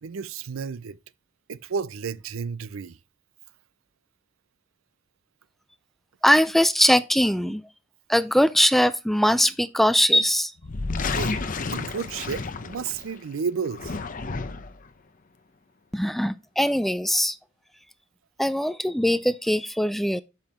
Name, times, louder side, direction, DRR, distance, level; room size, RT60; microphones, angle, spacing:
voice 1, 0.0-1.0 1.5-3.0 11.1-11.4 11.7-14.0, right 6 dB, 85° right, 0.5 m, -32 dB
voice 2, 6.2-7.6 8.1-10.5 15.9-17.4 18.4-20.2, equal, ahead, 0.3 m, -21 dB
sound 1, 10.6-13.2 13.7-14.8, left 4 dB, 45° left, 0.7 m, -31 dB
7.1 x 5.6 x 4.2 m
head